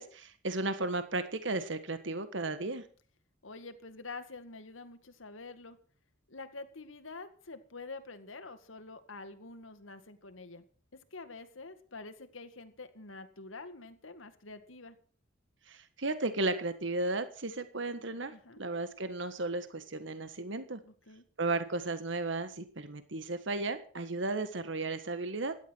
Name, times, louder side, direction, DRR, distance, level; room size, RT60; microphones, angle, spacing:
voice 1, 0.0-2.8 15.7-18.3 18.6-20.8 21.4-25.5, right 2 dB, 65° right, 11 dB, 1.5 m, -34 dB
voice 2, 3.4-5.8 6.3-10.6 10.9-15.0 18.3-18.6 20.8-21.2, left 3 dB, 80° left, 9 dB, 2.0 m, -47 dB
16.5 x 12.0 x 6.2 m, 0.43 s
head